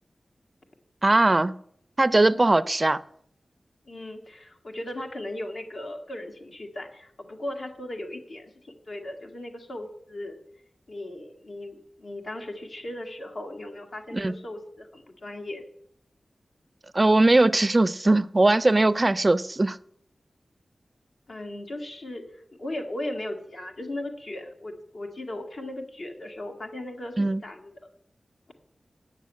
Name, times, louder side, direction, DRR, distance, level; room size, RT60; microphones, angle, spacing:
voice 1, 1.0-1.6 2.0-3.0 14.1-14.4 16.9-19.8 27.2-27.4, right 2 dB, 30° right, 16 dB, 0.4 m, -20 dB
voice 2, 3.9-10.4 10.9-15.6 21.3-27.7, left 1 dB, 60° left, 3 dB, 1.9 m, -37 dB
9.0 x 7.3 x 8.3 m, 0.70 s
wide cardioid pair, 100°, 0 cm